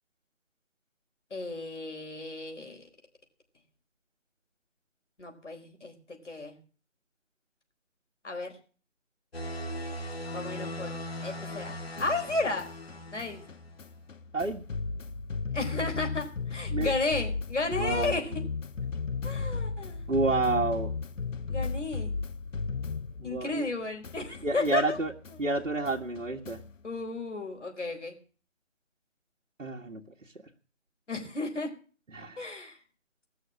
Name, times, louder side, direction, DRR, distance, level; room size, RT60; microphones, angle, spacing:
voice 1, 1.3-2.8 5.2-6.6 8.2-8.5 10.3-10.9 11.2-12.7 13.1-13.4 15.5-18.3 19.2-20.0 21.5-22.1 23.2-25.0 26.8-28.2 31.1-31.7 32.4-32.8, left 3 dB, 65° left, 3 dB, 4.2 m, -33 dB
sound 1, 9.3-13.8, left 1 dB, 50° left, 2.1 m, -39 dB
sound 2, 11.5-23.7 24.0-26.8, left 4 dB, 85° left, 0.8 m, -36 dB
voice 2, 17.7-18.2 20.1-20.9 23.2-23.6 24.4-25.1 25.4-26.6 29.6-30.0 32.1-32.4, right 3 dB, 75° right, -2 dB, 1.5 m, -29 dB
18.5 x 6.4 x 7.4 m, 0.40 s
figure-of-eight pair, 155°, 38 cm